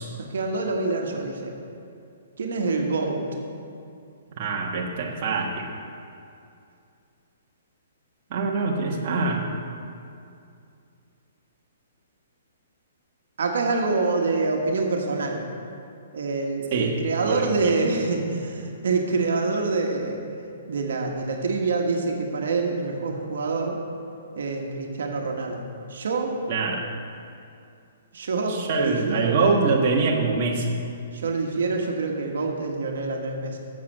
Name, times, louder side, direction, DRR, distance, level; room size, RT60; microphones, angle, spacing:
voice 1, 0.2-1.5 2.4-3.2 13.4-15.4 16.1-20.2 20.7-23.8 24.3-26.3 28.1-29.4 31.1-33.6, right 3 dB, 75° right, 1 dB, 1.4 m, -26 dB
voice 2, 4.4-5.7 8.3-9.4 16.7-16.9 17.3-17.8 26.5-26.8 28.5-30.8, right 4 dB, 40° right, -1 dB, 1.4 m, -24 dB
7.4 x 7.4 x 7.4 m, 2.5 s
hypercardioid pair, 155°, 0 cm